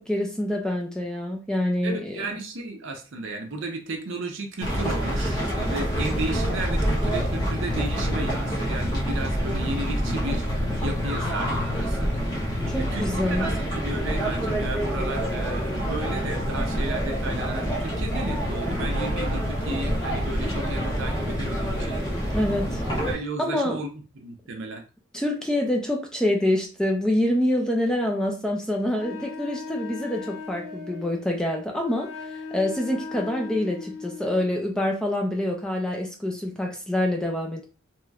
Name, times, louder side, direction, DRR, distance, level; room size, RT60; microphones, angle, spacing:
voice 1, 0.0-2.2 12.7-13.5 22.3-22.8 23.4-23.8 25.1-37.7, left 1 dB, 5° left, 1 dB, 0.4 m, -26 dB
voice 2, 1.8-10.4 10.8-12.1 12.8-22.4 23.1-24.8, right 2 dB, 60° right, 4 dB, 0.6 m, -34 dB
sound 1, 4.6-23.2, equal, 20° left, 1.0 m, -27 dB
Wind instrument woodwind instrument, 28.9-34.5, left 4 dB, 70° left, 0.7 m, -38 dB
3.0 x 2.9 x 2.3 m, 0.35 s
head